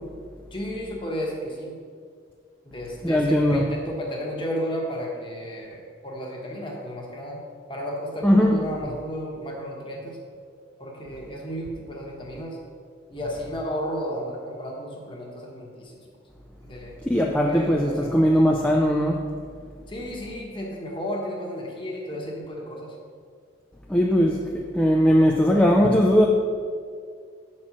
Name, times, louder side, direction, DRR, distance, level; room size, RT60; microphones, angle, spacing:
voice 1, 0.5-1.8 2.6-7.4 7.7-10.2 10.8-12.6 13.1-16.0 16.6-16.9 17.5-18.2 19.9-22.9, equal, 25° left, -1 dB, 1.2 m, -33 dB
voice 2, 3.0-3.7 8.2-8.6 17.1-19.3 23.9-26.3, equal, 5° left, -1 dB, 0.3 m, -19 dB
7.4 x 4.3 x 6.0 m, 2.1 s
head